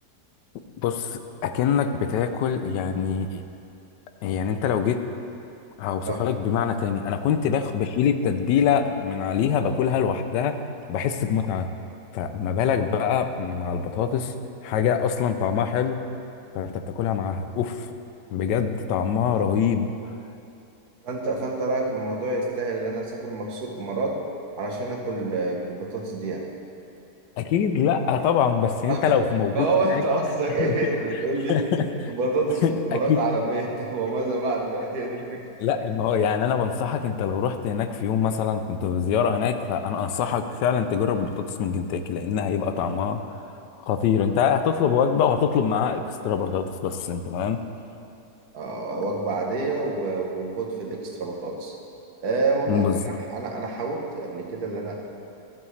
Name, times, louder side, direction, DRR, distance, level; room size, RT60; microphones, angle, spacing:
voice 1, 0.8-3.4 4.2-5.0 5.8-10.6 10.9-11.7 12.1-14.3 14.6-16.0 16.5-17.9 18.3-19.9 27.4-30.0 30.6-30.8 31.5-32.1 32.6-33.2 35.6-43.2 43.8-47.6 52.7-53.0, left 7 dB, 90° left, 8 dB, 1.2 m, -24 dB
voice 2, 21.0-24.2 24.6-26.4 28.9-29.2 29.5-31.6 32.1-35.4 44.2-44.3 48.5-51.7 52.2-52.9 53.3-54.9, right 2 dB, 65° right, 0 dB, 1.6 m, -27 dB
13.0 x 7.8 x 3.2 m, 2.7 s
omnidirectional pair, 1.8 m